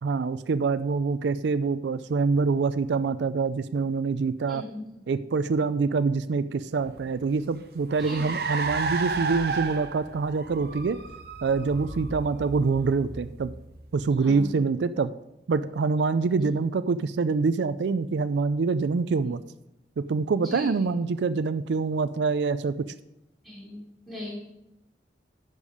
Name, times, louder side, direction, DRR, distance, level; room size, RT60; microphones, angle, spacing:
voice 1, 0.0-4.6 5.1-11.0 11.4-13.5 13.9-15.1 15.5-19.4 20.1-22.7, right 4 dB, 80° right, 13 dB, 0.4 m, -25 dB
voice 2, 4.5-4.8 8.0-8.3 14.2-14.5 16.4-16.5 19.2-19.3 20.4-20.8 23.4-24.4, left 1 dB, ahead, -6 dB, 3.4 m, -38 dB
Car, 6.8-14.6, right 4 dB, 60° right, 0.8 m, -34 dB
10.5 x 6.7 x 4.9 m, 0.87 s
head